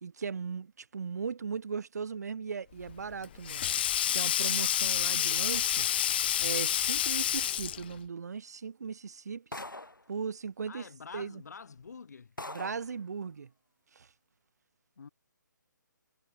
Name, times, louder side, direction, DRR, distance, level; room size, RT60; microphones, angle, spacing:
voice 1, 0.0-3.6 4.1-5.9 6.4-9.6 10.1-10.9 11.1-11.4 12.5-13.5 13.9-14.1, right 6 dB, 55° right, 1.8 m, -38 dB
Sink (filling or washing), 2.8-8.0, left 11 dB, 30° left, 0.4 m, -29 dB
sound 1, 9.5-10.1 11.1-11.2 11.8-11.9 12.4-12.9, left 2 dB, 85° left, 2.7 m, -42 dB
voice 2, 10.7-12.4 15.0-15.1, left 5 dB, 55° left, 6.5 m, -47 dB
figure-of-eight pair, 145°, 11 cm